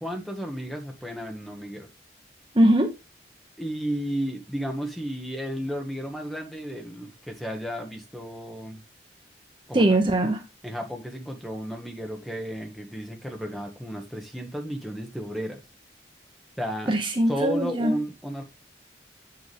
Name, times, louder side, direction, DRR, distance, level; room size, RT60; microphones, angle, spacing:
voice 1, 0.0-1.9 3.6-8.8 9.7-10.0 10.6-15.6 16.6-16.9 17.3-18.4, equal, ahead, 1.3 m, -33 dB
voice 2, 2.5-2.9 9.7-10.4 16.9-18.0, right 1 dB, 25° right, 0.9 m, -21 dB
8.0 x 6.7 x 3.4 m
head